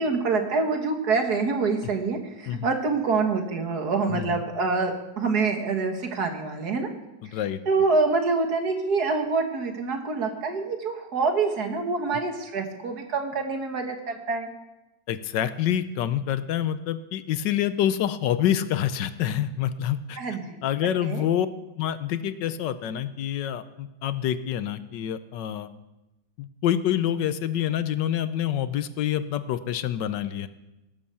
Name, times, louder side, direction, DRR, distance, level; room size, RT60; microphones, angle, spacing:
voice 1, 0.0-6.9 7.7-14.5 20.2-20.6 21.0-21.3, right 4 dB, 60° right, 4 dB, 2.0 m, -26 dB
voice 2, 4.1-4.4 7.2-7.6 12.1-12.2 15.1-20.2 20.6-21.5 21.8-25.7 26.4-30.5, left 10 dB, 80° left, 13 dB, 1.3 m, -27 dB
18.0 x 7.6 x 7.0 m, 0.99 s
omnidirectional pair, 2.0 m